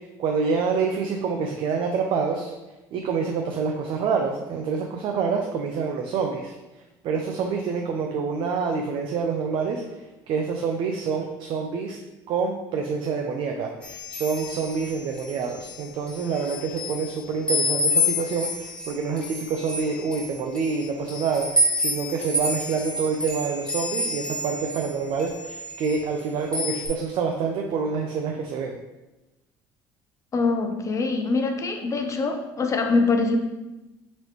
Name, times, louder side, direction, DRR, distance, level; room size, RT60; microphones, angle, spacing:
voice 1, 0.2-2.5 2.9-6.5 7.0-9.8 10.3-12.0 12.3-21.5 21.7-28.8, right 5 dB, 60° right, 2 dB, 0.5 m, -27 dB
sound 1, 13.8-15.7 16.1-17.1 17.5-24.9 25.2-26.2 26.5-26.9, left 1 dB, 10° left, 1.3 m, -28 dB
voice 2, 30.3-33.4, left 3 dB, 35° left, 5 dB, 0.6 m, -24 dB
4.0 x 3.2 x 3.0 m, 1.0 s
supercardioid pair, 90°, 10 cm